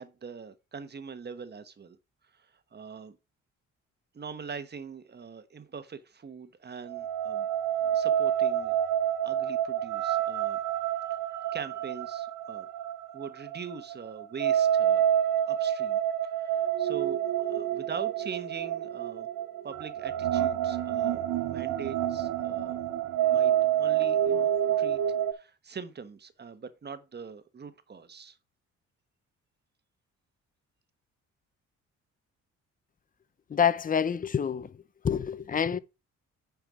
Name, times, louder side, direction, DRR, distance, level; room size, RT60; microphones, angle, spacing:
voice 1, 0.0-2.0 2.7-3.2 4.1-7.5 7.8-8.8 9.2-10.6 11.1-11.2 11.5-12.7 13.1-15.1 15.4-17.2 17.4-19.3 19.6-21.2 21.5-22.8 23.3-25.0 25.3-28.4, right 5 dB, 35° right, 1.2 m, -42 dB
sound 1, 6.9-25.3, right 10 dB, 90° right, 0.9 m, -28 dB
voice 2, 33.5-34.7 35.0-35.8, left 7 dB, 30° left, 0.6 m, -27 dB
9.4 x 4.6 x 4.8 m
cardioid pair, 90°, 30 cm